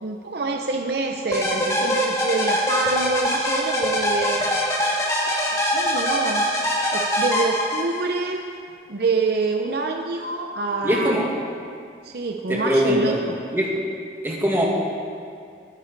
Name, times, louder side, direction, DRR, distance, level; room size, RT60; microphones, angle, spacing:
voice 1, 0.0-4.4 5.1-6.4 6.9-8.4 8.9-11.2 12.0-13.3, right 3 dB, 55° right, 3 dB, 0.7 m, -26 dB
sound 1, 1.3-8.2, equal, 15° left, 1.6 m, -23 dB
voice 2, 10.8-11.3 12.5-13.2 13.5-13.8 14.2-14.7, equal, 10° right, -3 dB, 1.8 m, -21 dB
21.0 x 9.6 x 4.0 m, 2.4 s
head